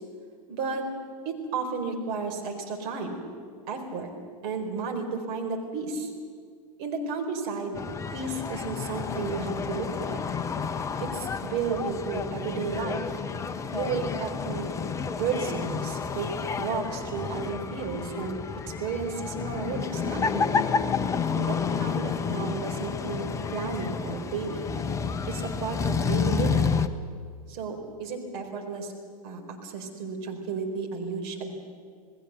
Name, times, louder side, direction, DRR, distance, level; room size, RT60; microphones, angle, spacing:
voice 1, 0.5-0.9 1.2-3.2 3.7-4.1 4.4-6.1 6.8-7.8 8.1-10.2 11.0-13.1 13.7-14.7 15.1-16.3 16.6-18.4 18.8-20.7 21.3-24.7 25.3-26.8 27.5-28.9 29.2-31.5, right 4 dB, 45° right, 3 dB, 4.2 m, -33 dB
sound 1, 7.7-26.9, left 5 dB, 15° left, 0.9 m, -30 dB
27.0 x 19.5 x 6.7 m, 2.1 s
figure-of-eight pair, 95°, 19 cm